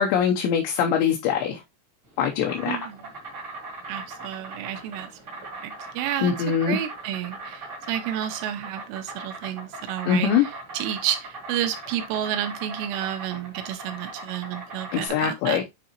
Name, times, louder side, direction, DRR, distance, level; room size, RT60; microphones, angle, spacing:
voice 1, 0.0-1.6 2.2-2.8 6.2-6.8 10.1-10.5 14.9-15.6, left 8 dB, 75° left, 2.8 m, -23 dB
Insect, 2.0-15.1, right 3 dB, 45° right, 1.3 m, -40 dB
voice 2, 2.7-3.0 3.9-6.3 6.7-15.6, right 11 dB, 80° right, 3.3 m, -31 dB
9.4 x 3.7 x 3.0 m
omnidirectional pair, 5.7 m